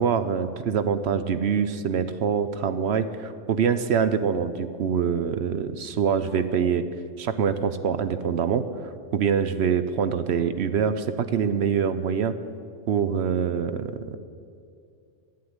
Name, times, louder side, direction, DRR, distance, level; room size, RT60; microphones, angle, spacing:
voice 1, 0.0-6.9 7.2-8.7 9.1-12.4 12.9-14.2, right 7 dB, 65° right, 11 dB, 0.8 m, -25 dB
11.5 x 8.5 x 9.6 m, 2.4 s
omnidirectional pair, 1.3 m